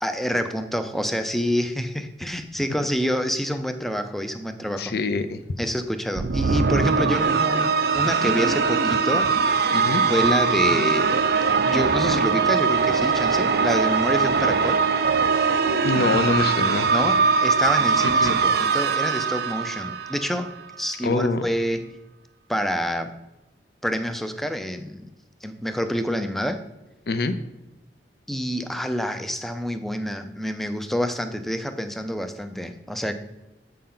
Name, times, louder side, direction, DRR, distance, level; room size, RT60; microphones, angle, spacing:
voice 1, 0.0-4.9 5.6-9.6 10.1-11.1 11.6-14.8 16.9-22.0 22.5-23.2 23.8-25.1 25.4-26.6 28.3-33.1, equal, ahead, 8 dB, 0.4 m, -27 dB
voice 2, 4.8-5.4 9.7-10.0 15.8-16.9 18.2-18.3 21.0-21.5 27.1-27.3, left 3 dB, 60° left, 11 dB, 0.5 m, -24 dB
sound 1, 6.2-20.5, right 5 dB, 60° right, 0.5 m, -21 dB
7.5 x 5.7 x 3.8 m, 0.98 s
head